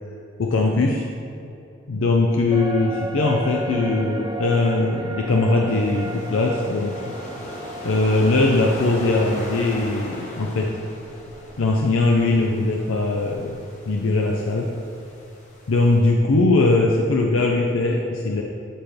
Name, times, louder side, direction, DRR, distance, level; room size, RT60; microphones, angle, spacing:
voice 1, 0.4-1.1 1.9-7.1 7.8-10.7 11.6-13.6 13.9-14.7 15.7-18.4, left 2 dB, 85° left, 0 dB, 0.6 m, -20 dB
sound 1, 2.5-12.0 12.3-12.4, right 1 dB, 20° right, 0.4 m, -34 dB
sound 2, 5.7-16.0, equal, 40° left, 1.0 m, -38 dB
9.1 x 3.3 x 5.9 m, 2.7 s
head